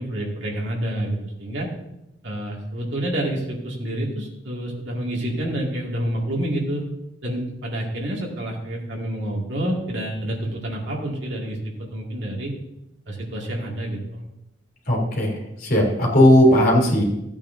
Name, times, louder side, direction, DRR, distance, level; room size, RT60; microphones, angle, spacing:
voice 1, 0.0-1.7 2.2-6.8 7.2-11.6 11.9-12.5 13.1-14.2, right 1 dB, 70° right, -3 dB, 2.4 m, -28 dB
voice 2, 14.9-17.0, equal, 50° left, -2 dB, 3.6 m, -17 dB
14.5 x 8.6 x 2.8 m, 0.87 s
head